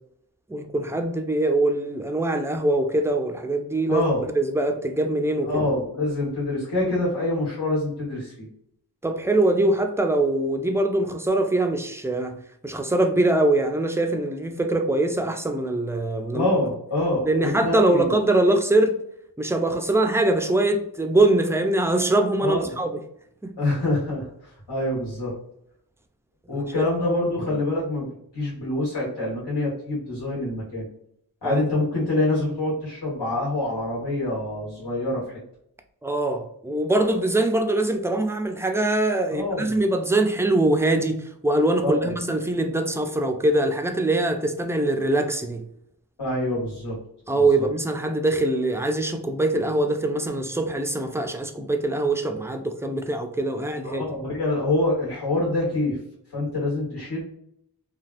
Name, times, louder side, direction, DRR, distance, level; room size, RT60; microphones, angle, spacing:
voice 1, 0.5-5.5 9.0-16.5 17.3-19.0 19.4-22.9 23.4-23.6 26.5-26.8 31.4-31.6 36.0-45.6 47.3-54.0, right 2 dB, 5° right, 0.4 m, -23 dB
voice 2, 3.9-4.2 5.4-8.5 16.3-18.1 22.4-22.7 23.6-25.3 26.5-28.1 28.3-30.9 31.4-35.2 39.3-39.8 41.8-42.1 46.2-47.0 47.3-47.7 53.8-56.0 56.3-57.2, left 2 dB, 85° left, 1.4 m, -26 dB
3.4 x 2.4 x 2.4 m
wide cardioid pair, 50°, 40 cm